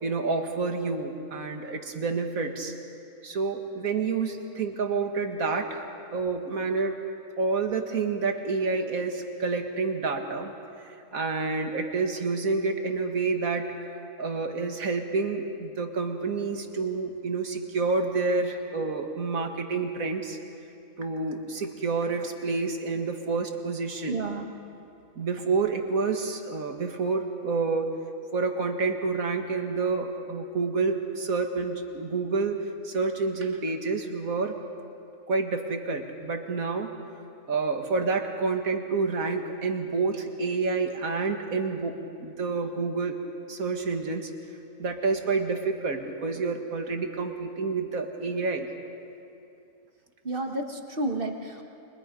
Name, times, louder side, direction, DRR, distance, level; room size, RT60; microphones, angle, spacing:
voice 1, 0.0-2.7 3.2-7.0 7.4-10.5 11.1-13.8 14.2-20.4 21.0-24.2 25.2-27.9 28.3-32.6 32.8-34.6 35.3-36.9 37.5-43.2 43.5-44.3 44.8-48.7, right 4 dB, 80° right, 4 dB, 2.2 m, -28 dB
voice 2, 24.1-24.5 50.2-51.6, right 2 dB, 40° right, 3 dB, 1.7 m, -31 dB
30.0 x 24.0 x 5.3 m, 2.6 s
omnidirectional pair, 1.5 m